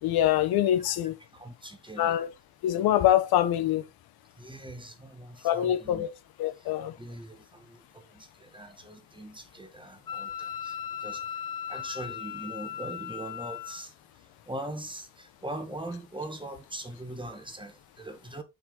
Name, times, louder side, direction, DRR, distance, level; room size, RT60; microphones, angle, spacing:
voice 1, 0.0-1.1 2.0-2.3 2.6-3.8 5.4-6.1 6.4-6.9, left 12 dB, 90° left, 1.1 m, -24 dB
voice 2, 1.3-2.2 4.4-6.0 7.0-11.2 11.7-13.9 14.5-18.4, right 1 dB, 15° right, 1.4 m, -41 dB
Wind instrument woodwind instrument, 10.1-13.8, left 9 dB, 65° left, 1.3 m, -37 dB
5.7 x 5.5 x 3.8 m
cardioid pair, 75°, 36 cm